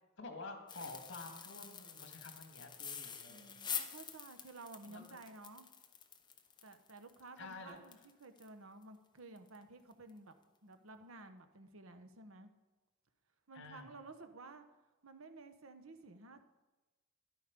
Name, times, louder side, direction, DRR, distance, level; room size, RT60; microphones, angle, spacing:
voice 1, 0.2-3.5 4.9-5.2 7.4-7.8 13.5-13.9, left 3 dB, 60° left, 4 dB, 2.0 m, -50 dB
sound 1, 0.7-8.5 8.8-8.9 9.4-9.6 9.9-10.1, left 7 dB, 20° left, 0.8 m, -47 dB
voice 2, 3.3-5.7 6.6-10.3 10.6-12.5 13.5-14.7 15.0-16.4, right 3 dB, 80° right, 9 dB, 1.2 m, -54 dB
13.0 x 11.5 x 5.3 m, 1.2 s
head